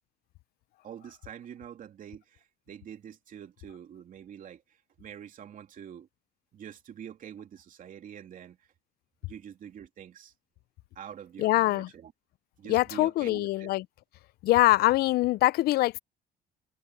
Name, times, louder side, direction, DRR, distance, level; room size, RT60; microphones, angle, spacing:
voice 1, 0.8-6.1 6.5-8.6 9.2-10.3 10.9-12.1 12.6-13.7, right 9 dB, 55° right, 3.1 m, -46 dB
voice 2, 11.4-11.9 12.7-13.9 14.4-16.0, left 17 dB, 70° left, 0.4 m, -23 dB
cardioid pair, 110°, 17 cm